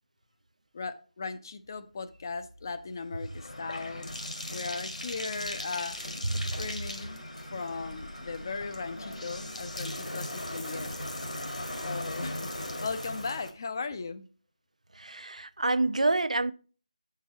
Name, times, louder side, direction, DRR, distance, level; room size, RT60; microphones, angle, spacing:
voice 1, 0.7-4.1 4.5-6.0 6.6-7.2 7.5-10.9 11.8-14.2, left 4 dB, 30° left, 0.5 m, -37 dB
Bathtub (filling or washing), 2.1-13.5, left 1 dB, 75° left, 1.6 m, -38 dB
voice 2, 14.9-16.5, right 2 dB, 70° right, 0.4 m, -27 dB
6.8 x 4.7 x 4.3 m
figure-of-eight pair, 160°, 4 cm